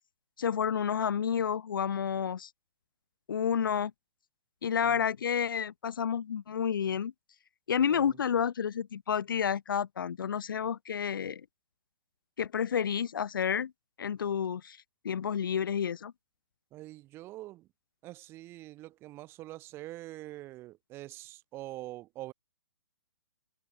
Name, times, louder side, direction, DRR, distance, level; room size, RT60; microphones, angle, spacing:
voice 1, 0.4-2.5 3.3-3.9 4.6-7.1 7.7-11.4 12.4-13.7 14.0-14.8 15.0-16.1, left 8 dB, 75° left, 0.9 m, -30 dB
voice 2, 16.7-17.7 18.0-22.3, right 16 dB, 20° right, 1.9 m, -45 dB
hypercardioid pair, 150°, 11 cm